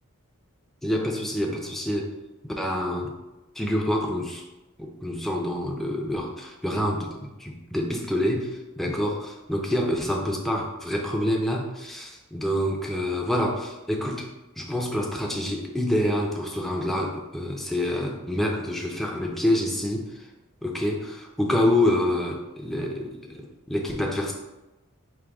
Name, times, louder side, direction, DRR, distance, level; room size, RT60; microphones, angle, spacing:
voice 1, 0.8-2.1 2.4-3.1 3.6-4.4 4.8-14.3 14.6-20.2 20.6-24.3, left 1 dB, ahead, -1 dB, 0.5 m, -27 dB
4.6 x 2.2 x 3.4 m, 1.0 s
head